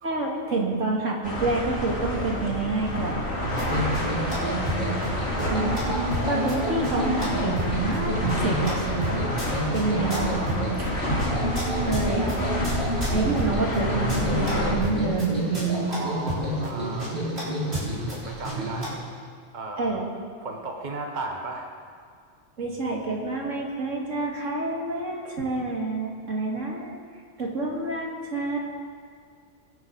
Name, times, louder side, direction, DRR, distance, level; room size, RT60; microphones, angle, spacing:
voice 1, 0.0-3.2 5.5-9.2 9.7-10.3 11.8-12.4 13.1-15.9 19.8-20.0 22.6-27.0 27.4-28.6, right 3 dB, 75° right, -2 dB, 2.6 m, -28 dB
sound 1, 1.2-14.7, left 1 dB, 65° left, 3.7 m, -28 dB
sound 2, 3.4-18.9, right 1 dB, 55° right, 4.6 m, -29 dB
voice 2, 9.6-10.9 15.9-17.2 17.7-18.9 19.5-20.1 20.4-21.9, right 2 dB, 40° right, 2 dB, 1.3 m, -37 dB
24.0 x 10.5 x 4.0 m, 2.1 s
omnidirectional pair, 1.3 m